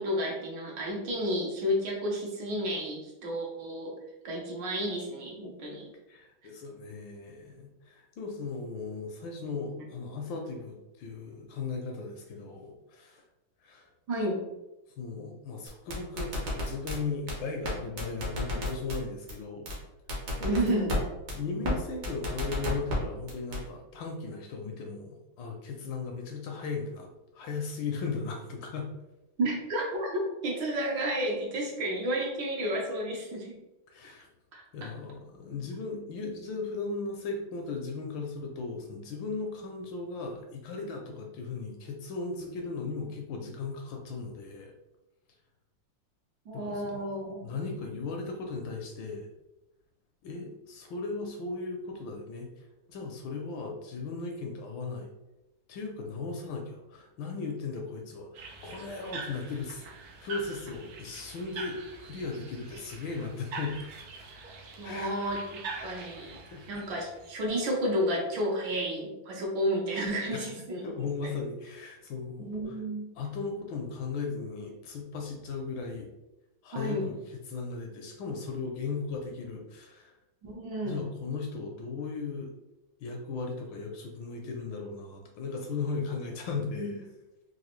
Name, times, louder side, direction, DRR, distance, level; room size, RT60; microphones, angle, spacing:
voice 1, 0.0-4.0 4.2-5.9 9.4-9.8 14.1-14.4 20.4-21.0 29.4-33.5 34.5-34.9 46.5-47.5 64.8-66.4 66.7-71.3 72.4-73.1 76.7-77.1 80.4-81.0 86.7-86.9, equal, 70° right, -1 dB, 1.3 m, -32 dB
voice 2, 6.1-13.2 13.6-13.9 15.0-19.7 20.4-20.9 21.3-28.9 33.9-34.3 34.7-44.7 46.5-49.3 50.2-55.1 55.7-59.8 60.2-63.8 64.8-65.2 66.5-66.7 70.3-70.5 70.8-72.8 73.2-76.1 76.6-80.1 80.8-82.5 83.0-87.0, left 4 dB, 75° left, 2 dB, 1.2 m, -37 dB
sound 1, 15.7-17.0 17.3-17.4 17.6-17.7 18.0-19.0 19.3-19.4 19.7-19.8 20.1-21.0 21.3-21.4 21.6-21.7 22.0-23.0 23.3-23.6, left 1 dB, 50° right, 0.8 m, -31 dB
sound 2, 58.3-68.1, right 3 dB, 85° right, 0.8 m, -44 dB
3.9 x 2.5 x 3.0 m, 0.97 s
omnidirectional pair, 2.3 m